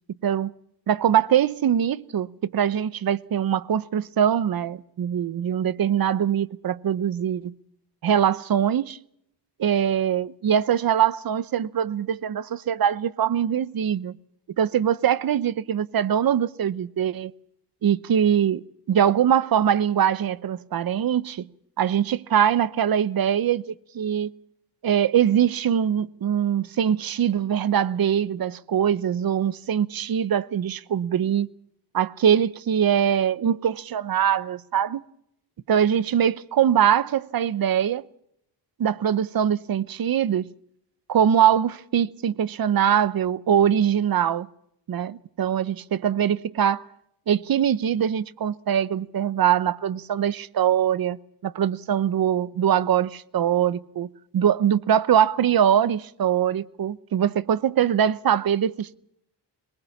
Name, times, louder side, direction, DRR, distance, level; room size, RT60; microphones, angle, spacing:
voice 1, 0.9-7.5 8.0-9.0 9.6-14.1 14.6-17.3 17.8-18.6 18.9-21.5 21.8-24.3 24.8-31.5 31.9-35.0 35.7-38.0 38.8-40.5 41.1-44.5 44.9-46.9 47.3-59.0, right 9 dB, 55° right, 0.9 m, -22 dB
22.5 x 21.0 x 7.2 m
wide cardioid pair, 155°, 42 cm